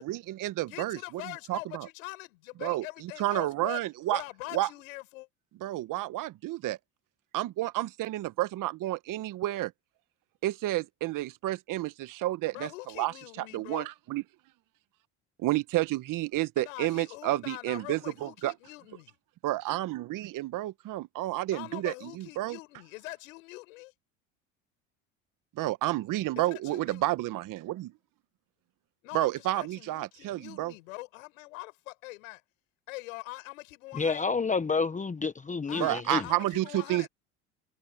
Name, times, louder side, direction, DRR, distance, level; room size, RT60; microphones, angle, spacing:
voice 1, 0.0-1.9 2.6-4.2 4.5-4.7 5.6-6.8 7.3-9.7 10.4-14.2 15.4-18.5 19.4-22.6 25.6-27.9 29.1-30.7 35.7-37.1, right 16 dB, 55° right, 1.2 m, -31 dB
voice 2, 0.7-3.8 4.1-5.3 12.5-13.9 16.6-19.1 21.5-23.9 26.4-27.0 29.0-32.4 32.9-34.2 35.7-37.1, left 21 dB, 80° left, 6.8 m, -43 dB
voice 3, 33.9-36.2, left 4 dB, 20° left, 1.2 m, -29 dB
hypercardioid pair, 80°, 39 cm